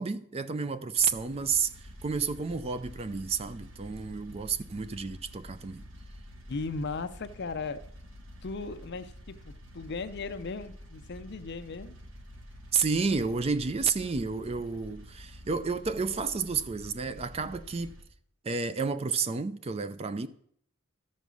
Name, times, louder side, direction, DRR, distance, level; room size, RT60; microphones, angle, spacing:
voice 1, 0.0-5.8 12.7-17.9 18.4-20.3, right 5 dB, 30° right, 0.4 m, -31 dB
sound 1, 1.0-18.0, equal, 60° right, 1.6 m, -48 dB
voice 2, 6.5-7.8 8.4-12.0, left 3 dB, 50° left, 0.6 m, -37 dB
13.0 x 5.4 x 6.2 m
head